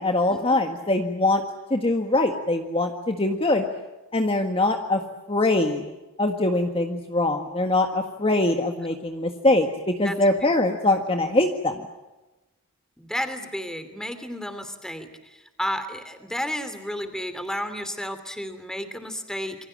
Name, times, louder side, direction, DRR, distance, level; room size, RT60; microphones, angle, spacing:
voice 1, 0.0-1.4 1.7-3.6 4.1-5.0 5.3-5.8 6.2-11.8, left 2 dB, 25° left, 4 dB, 1.7 m, -23 dB
voice 2, 13.0-19.6, equal, 5° left, 9 dB, 2.9 m, -32 dB
28.0 x 25.0 x 7.6 m, 1.1 s
head